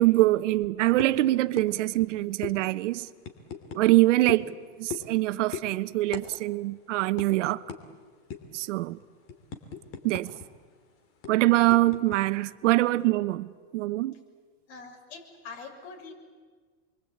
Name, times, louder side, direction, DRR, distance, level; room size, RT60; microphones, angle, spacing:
voice 1, 0.0-3.1 3.7-4.5 4.8-7.6 8.5-9.0 10.0-10.3 11.3-14.1, right 18 dB, 75° right, 1.1 m, -24 dB
sound 1, 1.0-1.2 1.6-1.7 2.0-2.1 2.4-2.6 3.2-3.8 4.3-4.5 4.9-5.2 5.5-5.7 6.1-6.3 6.5-6.7 7.2-7.3 7.7-7.8 8.3-8.6 9.0-10.5 10.7-10.8 11.2-12.2, left 7 dB, 35° left, 3.0 m, -38 dB
voice 2, 14.7-16.1, left 4 dB, 55° left, 6.7 m, -44 dB
29.0 x 23.0 x 8.7 m
supercardioid pair, 155°, 38 cm